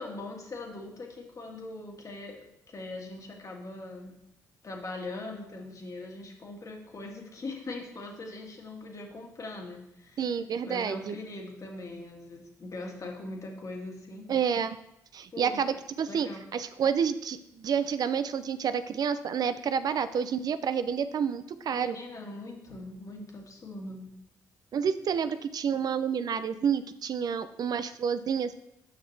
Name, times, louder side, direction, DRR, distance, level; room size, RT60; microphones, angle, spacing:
voice 1, 0.0-2.4 2.7-4.2 4.6-10.2 10.6-14.3 15.3-15.6 16.0-16.4 21.7-24.1, left 2 dB, 45° left, 1 dB, 1.7 m, -41 dB
voice 2, 10.2-11.1 14.3-14.8 15.1-22.0 24.7-28.5, right 7 dB, 60° right, 12 dB, 0.4 m, -29 dB
7.2 x 5.7 x 3.3 m, 0.81 s
supercardioid pair, 60°, 8 cm